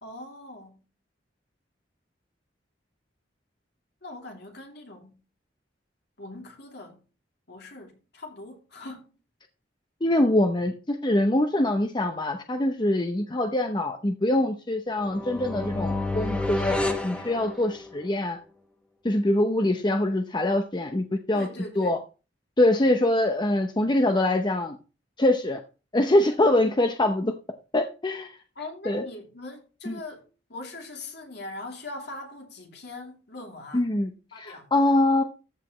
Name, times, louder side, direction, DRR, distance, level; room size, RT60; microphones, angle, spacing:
voice 1, 0.0-0.8 4.0-5.2 6.2-7.0 7.5-9.1 21.3-22.0 28.6-30.2 30.5-33.8 34.3-34.7, left 2 dB, 65° left, 2.8 m, -41 dB
voice 2, 10.0-16.8 17.0-18.4 19.0-21.5 21.8-22.0 22.6-24.8 25.2-25.6 25.9-27.3 27.7-28.3 28.8-29.0 29.9-30.0 33.7-35.2, left 1 dB, 25° left, 0.8 m, -24 dB
sound 1, 15.0-18.0, left 2 dB, 5° left, 1.2 m, -30 dB
14.0 x 8.1 x 3.1 m
head